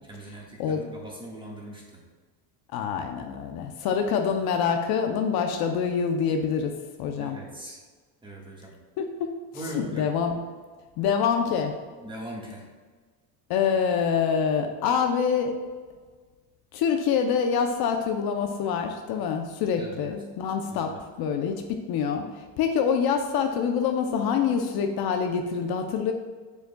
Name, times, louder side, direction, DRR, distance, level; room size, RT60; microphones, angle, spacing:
voice 1, 0.0-2.0 7.2-7.8 8.2-8.7 9.5-10.1 12.0-12.6 19.8-20.1 20.7-21.0, right 1 dB, 10° right, -2 dB, 1.6 m, -40 dB
voice 2, 2.7-6.7 7.0-7.4 9.0-9.3 9.5-10.4 11.0-11.7 13.5-15.6 16.7-26.1, left 6 dB, 55° left, 5 dB, 0.7 m, -26 dB
7.1 x 6.6 x 2.3 m, 1.4 s
supercardioid pair, 110°, 44 cm